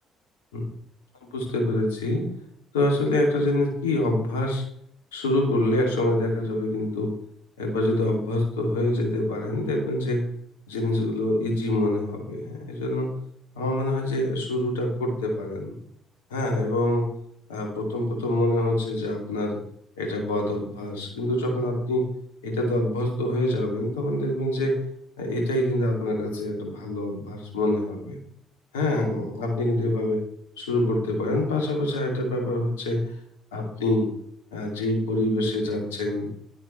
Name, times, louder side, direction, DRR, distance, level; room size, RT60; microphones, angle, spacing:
voice 1, 1.2-2.2 2.7-4.6 5.1-7.1 7.6-10.2 10.7-13.1 13.5-15.7 16.3-17.1 17.5-19.6 20.0-22.1 22.4-24.8 25.2-28.2 28.7-30.2 30.6-33.0 33.5-34.1 34.5-36.3, left 1 dB, 85° left, 1 dB, 2.4 m, -25 dB
11.0 x 9.0 x 3.2 m, 0.68 s
hypercardioid pair, 50°, 0 cm